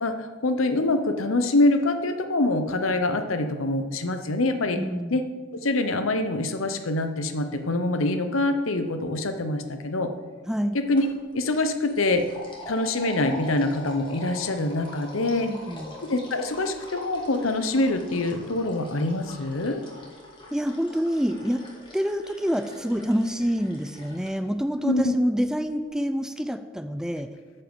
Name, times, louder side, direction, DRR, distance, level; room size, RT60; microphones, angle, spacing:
voice 1, 0.0-4.8 5.1-5.2 5.6-10.1 10.7-11.1 11.3-12.3 12.7-15.5 16.1-19.8 24.8-25.0, left 2 dB, 80° left, 8 dB, 0.9 m, -25 dB
voice 2, 4.7-5.3 10.5-10.8 15.4-16.0 20.5-21.7 21.9-27.3, equal, 5° right, 9 dB, 0.4 m, -27 dB
sound 1, 11.0-11.2 11.5-24.3, left 1 dB, 25° left, 2.2 m, -43 dB
9.2 x 5.6 x 7.1 m, 1.4 s
head